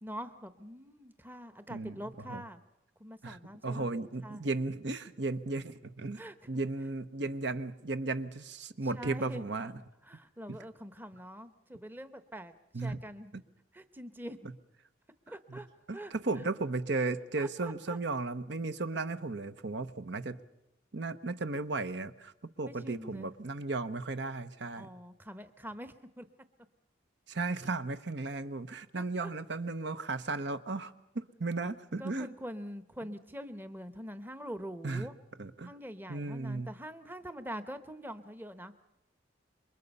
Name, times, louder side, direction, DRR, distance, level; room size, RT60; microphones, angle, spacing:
voice 1, 0.0-2.6 3.0-3.9 4.2-4.4 6.2-6.3 8.9-9.7 10.0-13.3 13.7-14.5 15.3-15.7 15.9-16.1 17.4-18.0 22.6-23.3 24.8-26.2 29.0-29.3 32.0-35.1 35.6-38.7, equal, 10° right, 11 dB, 0.9 m, -44 dB
voice 2, 3.2-6.2 6.5-9.8 12.7-13.0 13.3-13.4 15.5-15.6 15.9-20.4 20.9-22.3 22.6-24.9 27.3-32.3 34.8-35.1 35.4-35.7 36.1-36.7, right 3 dB, 60° right, 11 dB, 0.9 m, -35 dB
28.0 x 23.5 x 5.4 m, 0.88 s
head